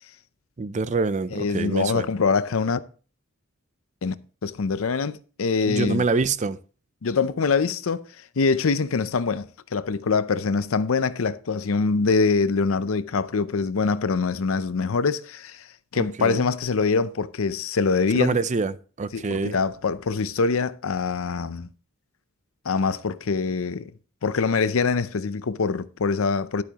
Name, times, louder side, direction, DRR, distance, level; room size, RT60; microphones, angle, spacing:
voice 1, 0.6-2.1 5.7-6.6 15.9-16.5 18.1-19.6, right 4 dB, 35° right, 0.5 m, -26 dB
voice 2, 1.3-2.8 4.0-4.2 4.4-6.0 7.0-8.0 8.4-15.7 15.9-18.4 19.1-21.7 22.7-23.9 24.2-26.6, left 4 dB, 80° left, 0.6 m, -24 dB
11.5 x 8.3 x 2.9 m
head